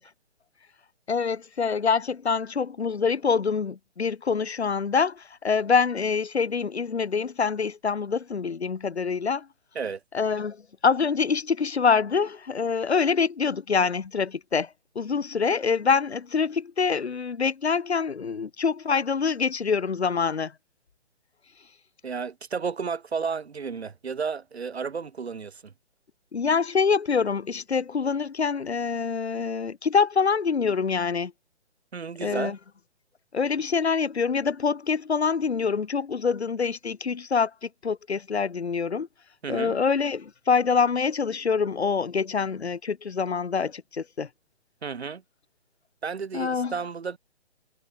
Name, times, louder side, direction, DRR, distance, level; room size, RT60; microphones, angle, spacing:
voice 1, 1.1-9.5 10.1-14.7 15.0-20.5 26.3-31.3 32.2-32.6 33.3-39.1 39.5-44.3 46.3-46.7, left 5 dB, 70° left, 5.8 m, -25 dB
voice 2, 22.0-25.7 31.9-32.5 39.4-39.8 44.8-45.2 46.0-47.2, right 5 dB, 70° right, 7.9 m, -32 dB
figure-of-eight pair, 145°, 34 cm